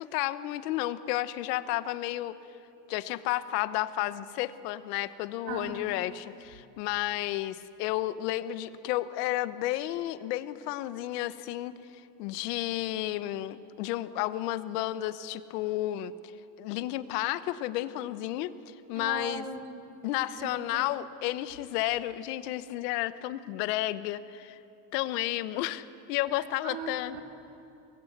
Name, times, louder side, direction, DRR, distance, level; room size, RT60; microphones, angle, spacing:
voice 1, 0.0-2.3 2.9-11.7 12.2-16.1 16.6-19.5 20.0-24.6 24.9-27.2, left 15 dB, 90° left, 13 dB, 1.2 m, -32 dB
voice 2, 18.9-19.8 20.4-20.8 26.6-27.2, right 5 dB, 75° right, 2 dB, 2.9 m, -39 dB
24.0 x 20.5 x 8.1 m, 2.7 s
cardioid pair, 145°, 46 cm